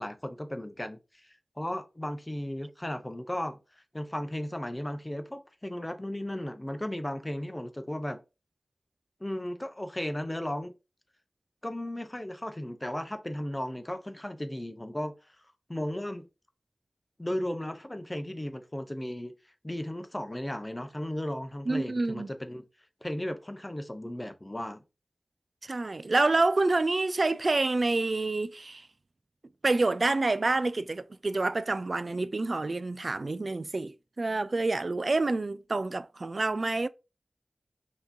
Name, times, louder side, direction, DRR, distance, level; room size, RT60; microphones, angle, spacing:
voice 1, 0.0-3.6 3.9-8.2 9.2-10.7 11.6-15.1 15.7-16.2 17.2-19.3 19.6-22.6 23.0-24.8, left 1 dB, 20° left, 0.7 m, -35 dB
voice 2, 21.7-22.3 25.6-28.9 29.6-36.9, right 3 dB, 55° right, 0.3 m, -28 dB
5.8 x 2.9 x 2.6 m
wide cardioid pair, 55°, 0 cm